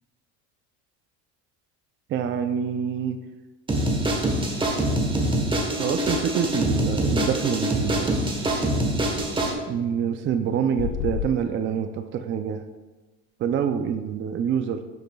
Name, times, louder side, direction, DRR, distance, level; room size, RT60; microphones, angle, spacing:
voice 1, 2.1-3.2 5.8-8.2 9.7-12.6 13.4-14.8, right 8 dB, 40° right, 8 dB, 0.5 m, -26 dB
sound 1, 3.7-9.5, right 1 dB, 15° right, 1.2 m, -24 dB
sound 2, 10.7-11.3, left 10 dB, 90° left, 0.5 m, -28 dB
11.5 x 6.6 x 2.3 m, 1.2 s
cardioid pair, 130°, 31 cm